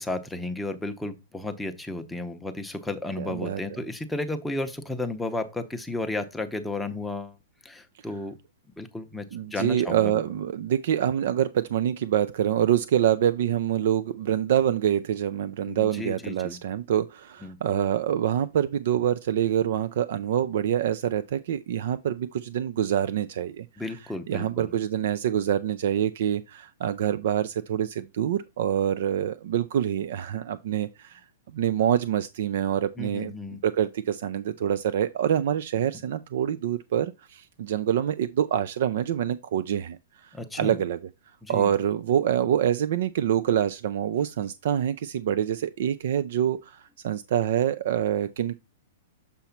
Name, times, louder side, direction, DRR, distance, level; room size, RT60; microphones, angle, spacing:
voice 1, 0.0-7.4 7.6-8.3 8.8-10.2 15.7-16.6 17.4-17.6 23.8-24.7 33.0-33.6 40.3-40.8 41.4-41.7, left 2 dB, 5° left, 0.7 m, -33 dB
voice 2, 3.2-3.8 9.3-23.7 24.3-31.2 31.5-33.3 33.6-40.0 40.2-41.0 41.5-48.5, right 10 dB, 60° right, 0.4 m, -26 dB
6.9 x 3.0 x 5.7 m
hypercardioid pair, 160°, 0 cm